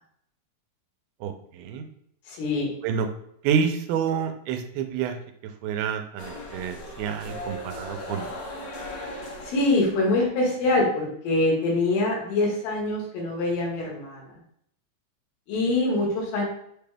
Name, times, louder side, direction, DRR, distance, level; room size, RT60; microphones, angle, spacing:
voice 1, 2.3-2.7 9.4-14.2 15.5-16.4, left 2 dB, 75° left, -3 dB, 2.9 m, -24 dB
voice 2, 3.4-5.2 5.6-8.3, right 7 dB, 90° right, 6 dB, 2.5 m, -28 dB
sound 1, 6.2-10.0, left 1 dB, 60° left, 1.9 m, -37 dB
6.2 x 2.2 x 3.4 m, 0.71 s
omnidirectional pair, 4.4 m